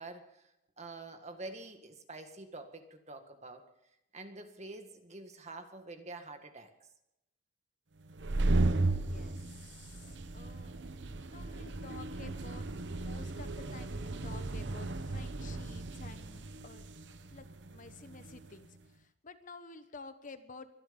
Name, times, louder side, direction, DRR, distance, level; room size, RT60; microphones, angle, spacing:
voice 1, 0.0-3.6 4.1-6.7, right 2 dB, 40° right, 6 dB, 1.9 m, -47 dB
sound 1, 8.1-18.5, right 2 dB, 70° right, 0.9 m, -35 dB
voice 2, 8.9-10.8 11.3-12.7 12.9-16.9 17.3-20.7, left 3 dB, 45° left, 10 dB, 1.1 m, -52 dB
23.5 x 11.0 x 5.3 m, 0.84 s
head